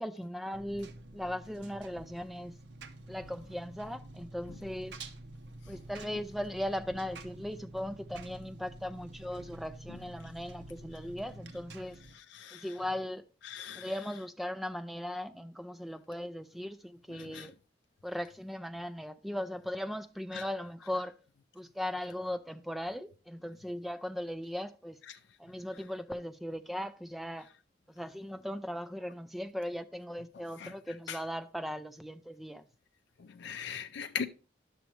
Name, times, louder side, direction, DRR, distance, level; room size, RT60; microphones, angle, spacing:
voice 1, 0.0-2.6 3.1-4.9 5.7-12.0 12.5-13.2 13.7-17.5 18.0-21.1 21.5-25.0 25.4-27.5 27.9-32.6, left 1 dB, ahead, 0.4 m, -38 dB
Engine, 0.5-12.1, right 2 dB, 70° right, 0.7 m, -49 dB
voice 2, 12.3-12.6 13.5-13.9 17.2-17.5 20.3-20.4 30.6-30.7 31.1-31.2 33.4-34.3, left 7 dB, 70° left, 0.4 m, -39 dB
10.0 x 6.3 x 3.1 m
head